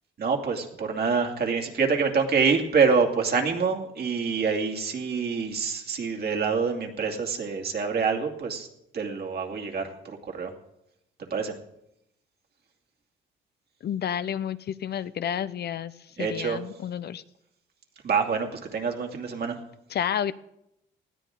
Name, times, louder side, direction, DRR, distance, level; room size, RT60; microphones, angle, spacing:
voice 1, 0.2-8.7 8.9-10.5 11.3-11.5 16.2-16.6 18.0-19.5, right 5 dB, 50° right, 2 dB, 2.5 m, -26 dB
voice 2, 13.8-17.2 19.9-20.3, left 9 dB, 55° left, 14 dB, 0.6 m, -30 dB
19.5 x 13.5 x 3.8 m, 0.81 s
cardioid pair, 90°, 20 cm